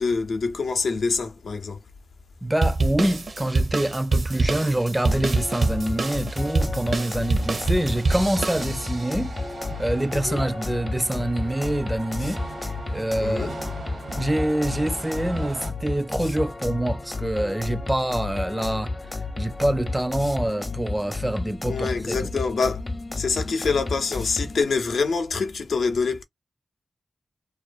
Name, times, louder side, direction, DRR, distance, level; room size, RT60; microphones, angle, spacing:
voice 1, 0.0-1.8 10.1-10.4 13.2-13.5 21.7-22.8 23.2-26.2, left 4 dB, 85° left, 0.6 m, -25 dB
voice 2, 2.4-9.4 9.8-13.5 14.1-18.9 19.4-22.3, right 1 dB, 15° right, 0.4 m, -26 dB
sound 1, 2.6-9.1, right 3 dB, 65° right, 0.6 m, -26 dB
sound 2, 5.1-24.6, left 3 dB, 40° left, 0.6 m, -32 dB
sound 3, 7.4-15.7, right 3 dB, 80° right, 1.0 m, -39 dB
2.4 x 2.2 x 2.5 m
cardioid pair, 45°, 0 cm